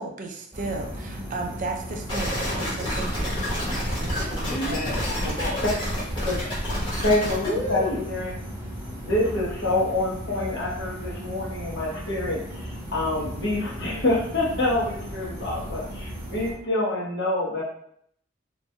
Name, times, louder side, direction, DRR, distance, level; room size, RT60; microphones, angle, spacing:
voice 1, 0.0-3.4 3.7-4.5, right 3 dB, 40° right, 2 dB, 0.4 m, -35 dB
sound 1, 0.5-16.5, equal, 20° right, 1.0 m, -36 dB
sound 2, 2.1-7.5, equal, 25° left, 0.9 m, -28 dB
voice 2, 4.5-5.6 6.4-6.8 7.5-8.0, left 1 dB, 40° left, -1 dB, 0.5 m, -30 dB
voice 3, 7.0-8.3 9.0-17.6, left 2 dB, 65° left, -5 dB, 1.0 m, -26 dB
2.9 x 2.2 x 2.7 m, 0.69 s
head